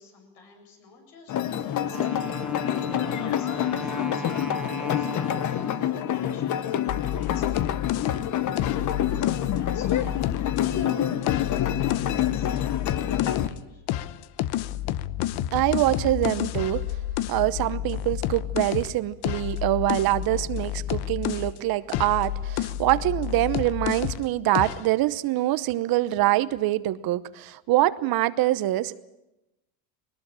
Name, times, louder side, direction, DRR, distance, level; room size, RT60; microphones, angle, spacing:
voice 1, 0.0-13.8, left 3 dB, 85° left, 3 dB, 7.9 m, -47 dB
sound 1, 1.3-13.5, left 10 dB, 40° left, 1.1 m, -27 dB
Wind instrument woodwind instrument, 1.8-6.2, equal, ahead, 1.1 m, -37 dB
sound 2, 6.9-10.9 11.2-13.6 13.9-21.6 21.9-24.3 24.5-24.9, left 13 dB, 55° left, 0.9 m, -30 dB
voice 2, 15.5-16.8 17.3-29.0, right 16 dB, 50° right, 15 dB, 1.0 m, -24 dB
20.5 x 19.5 x 8.8 m, 0.94 s
supercardioid pair, 125°, 46 cm